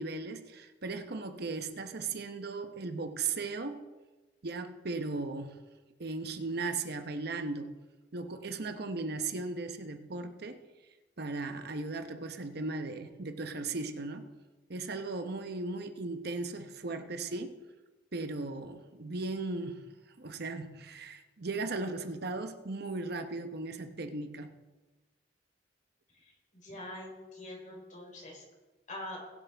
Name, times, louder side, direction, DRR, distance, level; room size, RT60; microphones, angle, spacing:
voice 1, 0.0-3.8 4.4-5.6 6.0-7.7 8.1-10.6 11.2-14.3 14.7-17.6 18.1-19.9 20.2-24.5, right 3 dB, 60° right, 7 dB, 0.9 m, -37 dB
voice 2, 26.5-28.4 28.9-29.2, left 1 dB, 45° left, -1 dB, 3.7 m, -44 dB
20.5 x 7.8 x 3.4 m, 1.2 s
head